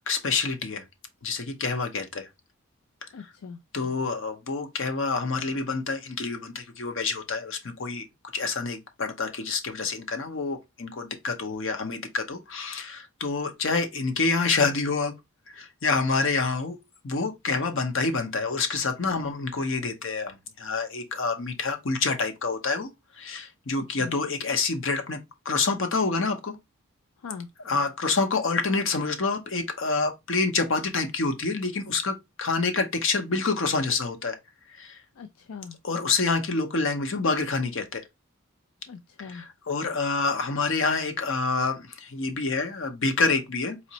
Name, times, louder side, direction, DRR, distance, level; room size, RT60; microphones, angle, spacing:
voice 1, 0.1-0.8 1.2-2.3 3.7-8.0 8.3-15.1 15.5-16.8 17.0-22.9 23.2-25.2 25.4-26.6 27.6-34.4 34.8-35.0 35.8-38.0 39.2-43.9, left 4 dB, 60° left, 0.7 m, -27 dB
voice 2, 3.1-3.6 23.7-24.2 27.2-27.5 35.2-35.8 38.9-39.4, left 5 dB, 90° left, 0.4 m, -41 dB
4.2 x 3.0 x 2.8 m
head